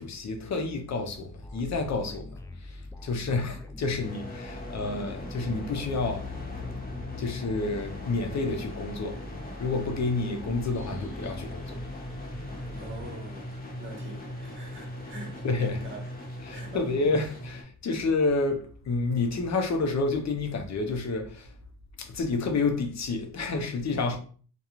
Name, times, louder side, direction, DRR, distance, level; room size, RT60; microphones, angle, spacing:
voice 1, 0.0-6.3 7.2-9.2 9.6-11.8 15.4-15.8 16.4-21.5 22.0-24.2, left 3 dB, 50° left, 0.6 m, -29 dB
sound 1, 1.4-13.7, left 1 dB, 10° left, 0.3 m, -43 dB
sound 2, 4.0-17.6, left 1 dB, 25° left, 1.0 m, -40 dB
voice 2, 12.7-16.0 16.5-16.9, right 2 dB, 35° right, 1.1 m, -43 dB
2.4 x 2.2 x 2.9 m
cardioid pair, 75°, 35 cm